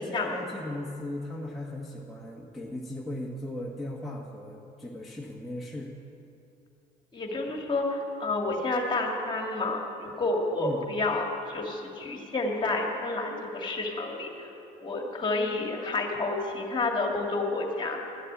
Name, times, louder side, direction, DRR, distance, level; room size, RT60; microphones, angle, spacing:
voice 1, 0.0-5.9 10.6-10.8, left 1 dB, ahead, -4 dB, 1.2 m, -37 dB
voice 2, 7.1-14.5 14.8-18.0, left 2 dB, 30° left, 1 dB, 2.0 m, -30 dB
12.5 x 6.6 x 9.2 m, 2.7 s
cardioid pair, 110°, 17 cm